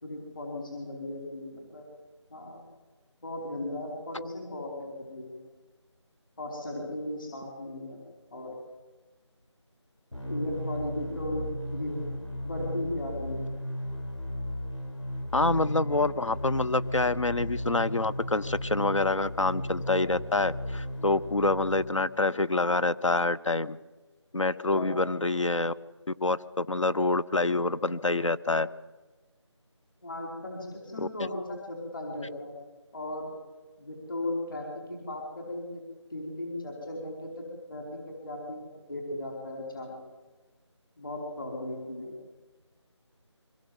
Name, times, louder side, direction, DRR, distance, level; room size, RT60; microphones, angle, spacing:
voice 1, 0.0-1.8 2.3-2.6 3.2-5.4 6.4-8.0 8.3-8.6 10.2-12.0 12.4-13.5 24.7-24.9 30.0-32.6 32.9-33.3 33.8-35.8 36.1-37.3 37.7-40.0 41.0-42.1, left 1 dB, 45° left, 0 dB, 4.9 m, -36 dB
sound 1, 10.1-22.1, left 1 dB, 75° left, 6.6 m, -36 dB
voice 2, 15.3-23.8 24.3-25.7 26.2-28.7 31.0-31.1, left 2 dB, 90° left, 14 dB, 1.2 m, -26 dB
24.5 x 20.5 x 8.1 m, 1.2 s
figure-of-eight pair, 175°, 15 cm